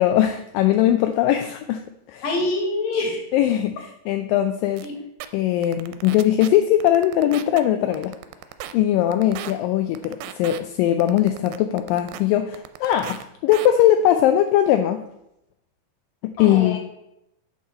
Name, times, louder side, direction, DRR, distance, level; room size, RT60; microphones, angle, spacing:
voice 1, 0.0-1.8 2.1-2.2 3.3-4.9 5.3-8.1 8.7-15.0 16.2-16.8, left 11 dB, 85° left, 7 dB, 2.0 m, -20 dB
voice 2, 2.2-3.2 4.8-4.9 16.4-16.8, left 2 dB, 55° left, 2 dB, 2.3 m, -25 dB
sound 1, 4.8-4.9 5.2-5.3 5.6-6.5 6.8-7.6 7.9-8.7 9.1-9.5 10.0-10.6 11.0-12.2 12.5-13.2 13.5-13.7, right 13 dB, 85° right, 2.4 m, -36 dB
8.3 x 6.0 x 4.3 m, 0.83 s
omnidirectional pair, 4.3 m